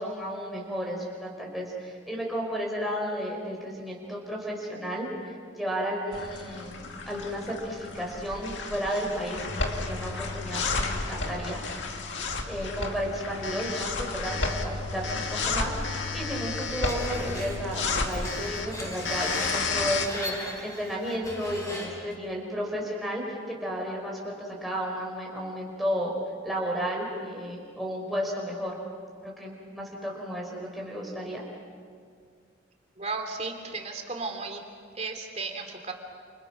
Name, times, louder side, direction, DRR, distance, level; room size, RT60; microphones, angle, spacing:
voice 1, 0.0-5.1 5.6-6.8 7.1-11.6 12.5-26.1 26.4-28.7 29.2-31.4, equal, ahead, -3 dB, 5.1 m, -33 dB
sound 1, 6.1-20.1, left 3 dB, 65° left, 2.2 m, -32 dB
Screech, 16.8-22.1, equal, 15° left, 6.2 m, -39 dB
voice 2, 33.0-34.6 35.0-35.9, right 3 dB, 35° right, 4 dB, 2.9 m, -34 dB
29.5 x 28.5 x 6.2 m, 2.1 s
head